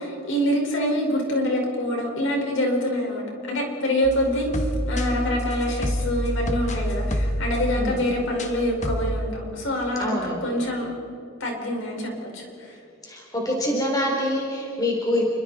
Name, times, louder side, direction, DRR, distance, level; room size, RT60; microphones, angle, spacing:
voice 1, 0.0-10.9 11.4-12.7, equal, 55° left, 0 dB, 5.2 m, -26 dB
sound 1, 4.0-8.5 8.8-9.3, equal, 30° left, 1.7 m, -27 dB
voice 2, 10.0-10.5 13.0-15.2, left 1 dB, 15° left, -1 dB, 3.6 m, -25 dB
29.5 x 24.5 x 4.3 m, 2.7 s
head